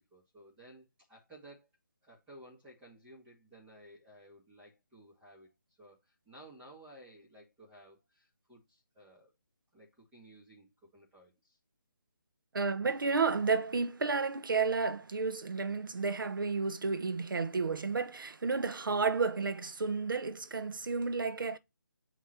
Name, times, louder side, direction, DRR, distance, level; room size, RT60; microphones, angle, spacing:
voice 1, 0.1-1.7 2.0-5.5 5.8-9.3 9.7-11.6, right 1 dB, 10° right, 1.9 m, -56 dB
voice 2, 12.5-21.6, right 4 dB, 75° right, 1.0 m, -31 dB
8.2 x 3.1 x 4.4 m
figure-of-eight pair, 160°, 11 cm